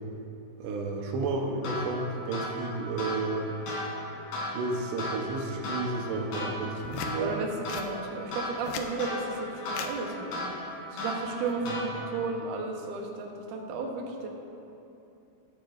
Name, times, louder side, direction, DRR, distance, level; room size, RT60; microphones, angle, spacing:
voice 1, 0.6-3.5 4.5-7.3, right 3 dB, 85° right, 1 dB, 3.2 m, -32 dB
sound 1, 1.6-12.3, left 1 dB, 60° left, 4.1 m, -36 dB
sound 2, 6.8-7.1 7.7-7.9 8.5-8.9 9.7-9.9 11.2-11.5, left 8 dB, 90° left, 2.0 m, -38 dB
voice 2, 7.2-14.3, right 3 dB, 65° right, 0 dB, 2.1 m, -34 dB
21.0 x 9.0 x 2.6 m, 2.8 s
omnidirectional pair, 4.8 m